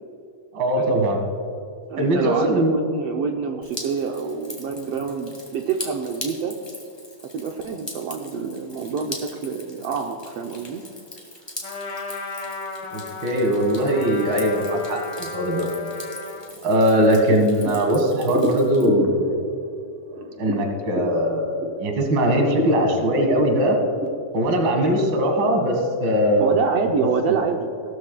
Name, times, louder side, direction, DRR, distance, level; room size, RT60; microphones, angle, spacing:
voice 1, 0.5-1.2 2.0-2.7 12.9-15.7 16.6-19.3 20.4-23.8 24.3-26.5 27.3-27.4, equal, 45° right, 3 dB, 2.1 m, -20 dB
voice 2, 1.9-6.5 7.3-10.8 26.4-27.9, right 6 dB, 75° right, 2 dB, 1.5 m, -27 dB
Drip, 3.6-18.9, left 1 dB, 10° left, 1.3 m, -41 dB
Trumpet, 11.6-16.5, left 3 dB, 55° left, 1.9 m, -34 dB
sound 1, 17.3-21.9 22.2-24.1, right 1 dB, 60° right, 1.9 m, -29 dB
18.0 x 13.0 x 2.3 m, 2.7 s
omnidirectional pair, 3.5 m